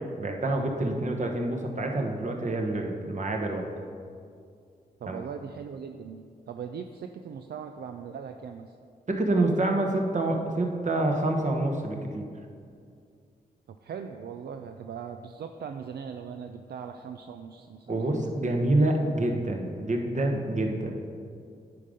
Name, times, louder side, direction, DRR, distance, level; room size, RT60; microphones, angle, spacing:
voice 1, 0.2-3.7 5.1-5.2 9.1-12.3 17.9-21.0, right 2 dB, 45° right, 2 dB, 1.1 m, -27 dB
voice 2, 5.0-8.7 13.8-18.2, right 7 dB, 70° right, 6 dB, 0.4 m, -40 dB
9.7 x 3.8 x 5.0 m, 2.3 s
cardioid pair, 45°, 17 cm